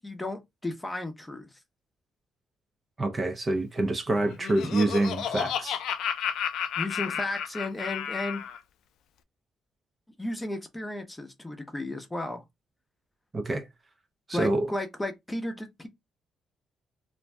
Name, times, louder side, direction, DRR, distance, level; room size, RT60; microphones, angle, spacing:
voice 1, 0.0-1.5 6.8-8.4 10.2-12.4 14.3-15.9, left 1 dB, 15° left, 0.7 m, -34 dB
voice 2, 3.0-5.8 13.3-13.7 14.3-14.7, right 2 dB, 30° right, 0.5 m, -27 dB
Laughter, 4.1-8.6, left 9 dB, 80° left, 0.3 m, -32 dB
2.6 x 2.2 x 3.3 m
cardioid pair, 90°, 0 cm